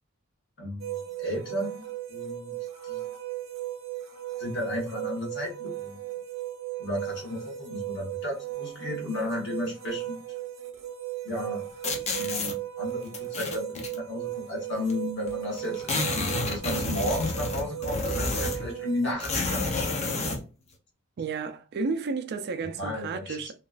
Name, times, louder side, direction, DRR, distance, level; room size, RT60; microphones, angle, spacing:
voice 1, 0.6-2.5 2.8-3.1 4.4-6.0 6.8-10.2 11.2-11.6 11.9-19.9 22.8-23.4, left 1 dB, 60° left, 1.3 m, -34 dB
sound 1, 0.8-19.1, right 14 dB, 70° right, 0.8 m, -36 dB
sound 2, 11.8-12.5 13.1-14.0 14.9-15.0 15.2-15.3 15.6-18.7 19.2-20.4, left 3 dB, 30° left, 0.6 m, -30 dB
voice 2, 21.2-23.5, right 4 dB, 50° right, 0.4 m, -32 dB
2.9 x 2.3 x 2.4 m
head